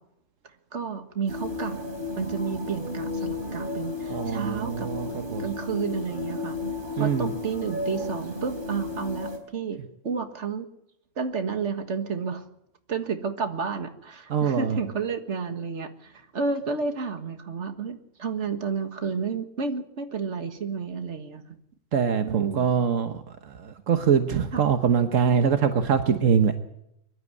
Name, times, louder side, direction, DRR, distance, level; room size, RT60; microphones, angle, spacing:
voice 1, 0.7-1.9 2.2-4.9 5.4-6.6 6.9-10.7 11.2-12.5 12.9-21.4 22.2-22.7 24.5-24.6, right 5 dB, 65° right, 8 dB, 1.9 m, -31 dB
sound 1, 1.3-9.4, left 3 dB, 40° right, 3.7 m, -33 dB
voice 2, 4.1-5.4 7.0-7.3 14.3-14.8 21.9-26.6, right 7 dB, 85° right, 8 dB, 1.5 m, -23 dB
23.0 x 12.0 x 9.6 m, 0.80 s
omnidirectional pair, 1.3 m